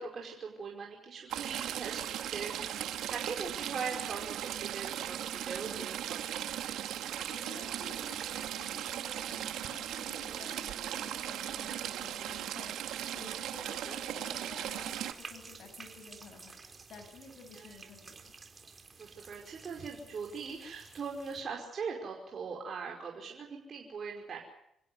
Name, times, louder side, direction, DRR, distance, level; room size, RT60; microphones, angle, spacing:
voice 1, 0.0-6.3 13.6-14.0 17.5-17.8 19.0-24.4, right 5 dB, 50° right, 0 dB, 5.2 m, -41 dB
Stream / Trickle dribble, 1.3-15.1, right 11 dB, 80° right, 1.9 m, -38 dB
voice 2, 7.3-18.3, left 4 dB, 65° left, 3 dB, 7.7 m, -52 dB
sound 1, 14.7-21.4, right 4 dB, 35° right, 4.2 m, -52 dB
28.0 x 16.0 x 8.1 m, 0.77 s
cardioid pair, 90°, 0 cm